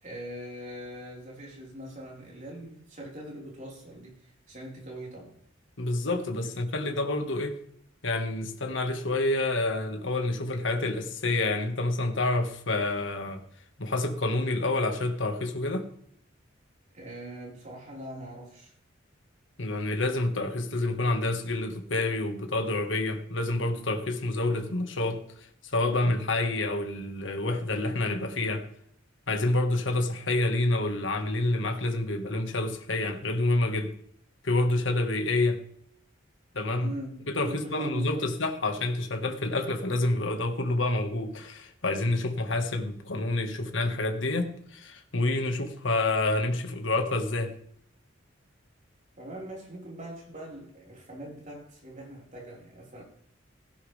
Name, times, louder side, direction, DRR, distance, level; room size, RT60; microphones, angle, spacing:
voice 1, 0.0-5.3 6.4-6.5 16.9-18.7 36.8-38.3 49.2-53.0, equal, 40° right, 4.7 m, -42 dB
voice 2, 5.8-7.6 8.0-13.4 13.8-15.9 19.6-25.2 25.7-28.7 29.3-33.9 34.4-35.6 36.5-36.9 37.3-47.5, left 2 dB, 70° left, 1.7 m, -28 dB
17.0 x 11.0 x 3.5 m
head